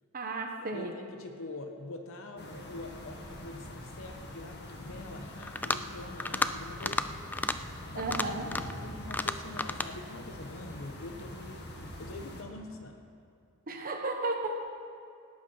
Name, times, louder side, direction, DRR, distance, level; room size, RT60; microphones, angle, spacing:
voice 1, 0.1-0.9 7.9-8.5 13.7-14.6, right 2 dB, 40° right, 2 dB, 1.2 m, -33 dB
voice 2, 0.7-7.2 7.9-11.6 12.0-13.0, left 2 dB, 65° left, 5 dB, 0.9 m, -45 dB
sound 1, 2.4-12.4, left 1 dB, 50° left, 1.6 m, -44 dB
sound 2, 5.4-5.9 6.2-6.5 6.8-7.1 7.3-7.6 8.0-8.8 9.1-9.9, left 2 dB, 10° left, 0.3 m, -31 dB
18.0 x 8.1 x 5.7 m, 2.4 s
head